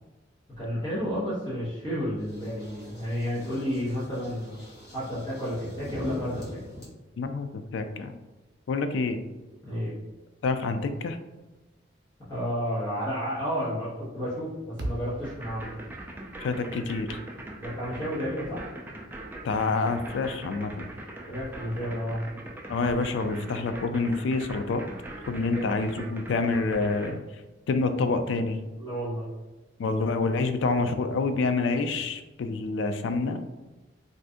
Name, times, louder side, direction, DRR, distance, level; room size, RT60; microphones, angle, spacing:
voice 1, 0.6-4.6 4.9-6.6 9.6-9.9 12.3-15.7 17.6-18.6 21.3-22.3 25.5-25.6 28.8-29.3, equal, 25° left, -10 dB, 1.0 m, -31 dB
sound 1, 2.2-6.8, equal, 55° left, 1.1 m, -43 dB
voice 2, 7.2-8.2 8.7-9.2 10.4-11.2 16.4-17.2 19.4-20.9 22.7-24.8 25.3-27.2 27.7-28.6 29.8-33.5, left 3 dB, 75° left, 8 dB, 0.3 m, -27 dB
sound 2, 14.8-19.1, right 1 dB, 60° right, 0.5 m, -41 dB
sound 3, 15.2-27.1, right 1 dB, 10° right, 0.3 m, -41 dB
2.6 x 2.4 x 3.5 m, 1.1 s
head